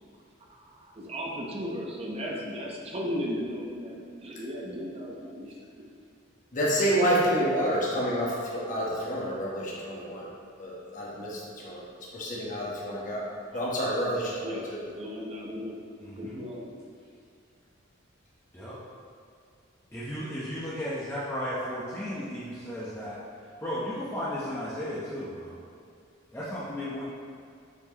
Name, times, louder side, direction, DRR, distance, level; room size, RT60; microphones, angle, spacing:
voice 1, 0.7-5.8 13.5-13.7 14.4-15.8 16.2-16.7, equal, 30° right, -2 dB, 0.9 m, -36 dB
voice 2, 6.5-10.3 10.6-11.8 12.1-13.2 13.5-14.8, equal, 40° left, -6 dB, 1.2 m, -28 dB
voice 3, 16.0-16.4 18.5-18.8 19.9-23.2 23.6-25.6 26.3-27.0, equal, 15° left, -10 dB, 0.9 m, -34 dB
7.3 x 4.4 x 2.9 m, 2.3 s
head